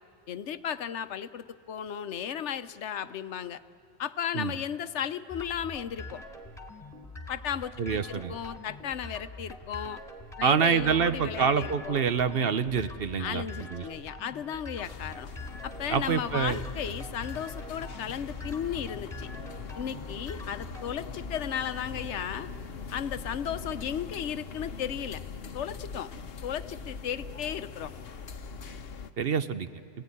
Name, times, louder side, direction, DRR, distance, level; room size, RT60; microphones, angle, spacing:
voice 1, 0.3-3.6 4.0-6.2 7.3-10.0 10.4-12.0 13.2-15.3 15.6-19.3 19.8-22.5 22.9-25.2 25.5-26.1 26.4-27.9, left 8 dB, 90° left, 12 dB, 1.1 m, -35 dB
sound 1, 5.3-21.0, left 1 dB, 25° left, 2.3 m, -44 dB
voice 2, 7.8-8.3 10.4-13.8 15.9-16.6 29.2-29.7, right 6 dB, 60° right, 11 dB, 1.0 m, -26 dB
sound 2, 14.8-29.1, left 5 dB, 60° left, 1.1 m, -41 dB
29.5 x 17.0 x 9.9 m, 2.4 s
omnidirectional pair, 1.1 m